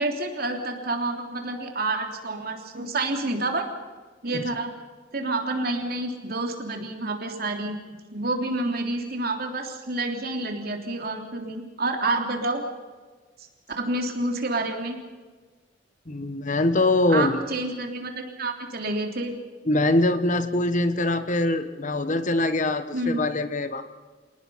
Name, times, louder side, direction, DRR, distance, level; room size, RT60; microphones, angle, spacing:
voice 1, 0.0-3.7 4.2-4.7 5.1-7.8 8.1-12.6 13.8-15.0 17.1-19.3 22.9-23.2, right 2 dB, 55° right, 3 dB, 3.3 m, -28 dB
voice 2, 16.1-17.4 19.6-23.8, left 2 dB, 45° left, 10 dB, 1.2 m, -23 dB
27.5 x 18.5 x 5.7 m, 1.4 s
head